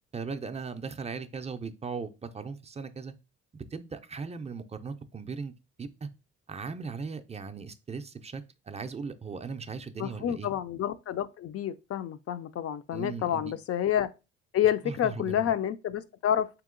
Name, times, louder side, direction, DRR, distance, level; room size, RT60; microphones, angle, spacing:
voice 1, 0.1-3.1 3.5-5.5 5.8-6.1 6.5-10.5 12.9-13.5 14.8-15.5, right 5 dB, 20° right, 0.4 m, -38 dB
voice 2, 10.0-14.1 14.5-16.5, left 10 dB, 55° left, 0.4 m, -29 dB
3.6 x 2.9 x 3.7 m
cardioid pair, 90°, 30 cm